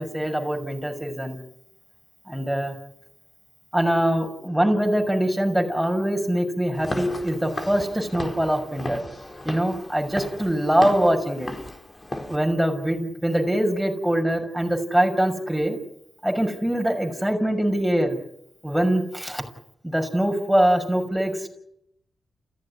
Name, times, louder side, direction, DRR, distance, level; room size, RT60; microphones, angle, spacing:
voice 1, 0.0-1.4 2.3-2.8 3.7-9.0 9.4-11.5 12.3-15.8 16.2-18.2 18.6-19.4 19.8-21.5, equal, ahead, 4 dB, 6.2 m, -23 dB
Walk footsteps / Siren, 6.7-12.4, left 1 dB, 30° left, 4.4 m, -35 dB
29.0 x 16.0 x 9.8 m, 0.79 s
cardioid pair, 55°, 0 cm